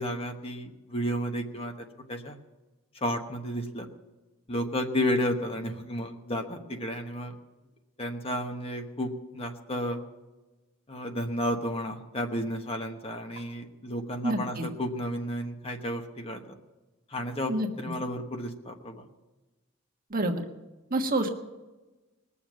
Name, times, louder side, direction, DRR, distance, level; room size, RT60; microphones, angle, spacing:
voice 1, 0.0-1.7 2.1-2.4 3.0-3.9 4.5-7.3 8.0-10.0 10.9-16.6 17.1-17.5 17.8-19.1, equal, 30° left, 4 dB, 1.1 m, -32 dB
voice 2, 14.2-14.6 17.5-17.7 20.1-20.4 20.9-21.3, right 1 dB, 45° right, 4 dB, 1.4 m, -27 dB
20.5 x 7.1 x 7.5 m, 1.1 s
head